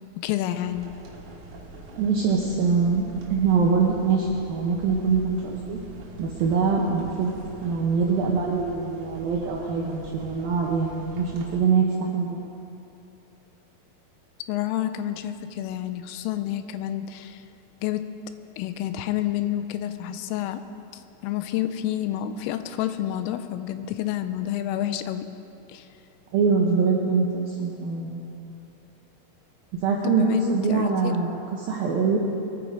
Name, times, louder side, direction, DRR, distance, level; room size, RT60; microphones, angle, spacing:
voice 1, 0.2-0.9 14.5-17.4 17.8-18.0 18.6-20.6 20.9-25.3 25.7-25.9 30.0-31.2, left 12 dB, 85° left, 10 dB, 3.2 m, -29 dB
sound 1, 0.6-11.6, right 2 dB, 60° right, 2.4 m, -44 dB
voice 2, 2.0-3.0 3.3-5.8 6.2-11.9 12.1-12.4 26.3-28.1 29.8-32.2, right 5 dB, 80° right, -2 dB, 2.1 m, -23 dB
22.5 x 9.2 x 4.9 m, 2.8 s
omnidirectional pair, 5.8 m